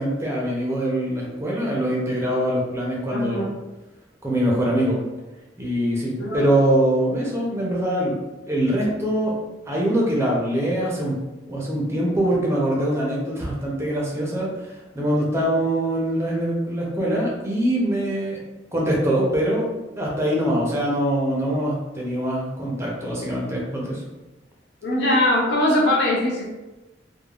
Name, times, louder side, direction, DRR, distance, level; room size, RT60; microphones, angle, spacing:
voice 1, 0.0-3.5 4.2-4.9 5.6-8.1 8.5-9.3 9.7-11.1 11.5-18.4 18.7-19.7 20.0-24.0, right 1 dB, 15° right, -3 dB, 0.6 m, -23 dB
voice 2, 3.1-3.5 6.2-6.5 24.8-26.4, left 1 dB, 70° left, -3 dB, 0.8 m, -21 dB
3.2 x 2.2 x 2.3 m, 1.1 s
head